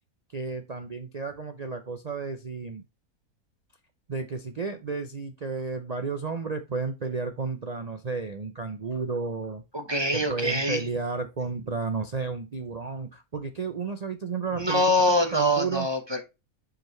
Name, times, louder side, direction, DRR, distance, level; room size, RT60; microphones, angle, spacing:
voice 1, 0.3-2.8 4.1-9.6 10.1-14.8 15.3-15.9, right 4 dB, 60° right, 0.4 m, -32 dB
voice 2, 9.7-10.9 14.5-16.2, left 1 dB, 20° right, 1.0 m, -24 dB
7.6 x 5.0 x 3.1 m
omnidirectional pair, 1.6 m